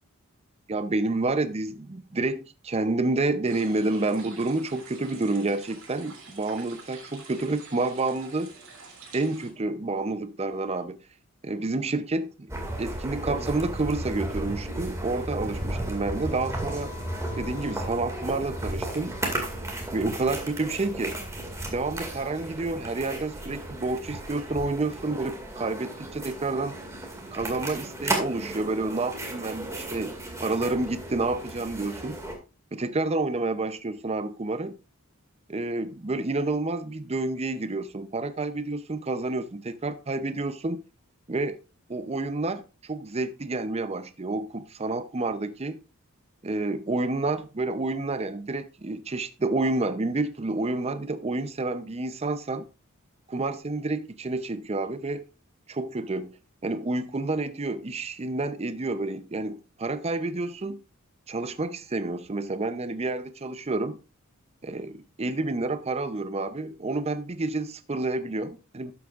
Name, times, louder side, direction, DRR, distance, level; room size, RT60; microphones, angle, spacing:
voice 1, 0.7-8.5 9.1-11.0 11.4-12.5 12.8-16.9 17.4-19.2 19.9-21.2 21.6-26.8 27.3-32.2 32.7-34.7 35.5-40.8 41.3-41.6 41.9-45.8 46.4-52.6 53.3-55.3 55.7-56.3 56.6-60.8 61.3-64.0 64.6-68.9, right 2 dB, 30° right, 0.6 m, -29 dB
sound 1, 3.5-9.5, right 4 dB, 80° right, 3.3 m, -47 dB
sound 2, 12.5-32.3, right 1 dB, 15° right, 2.1 m, -34 dB
12.0 x 8.0 x 2.4 m
head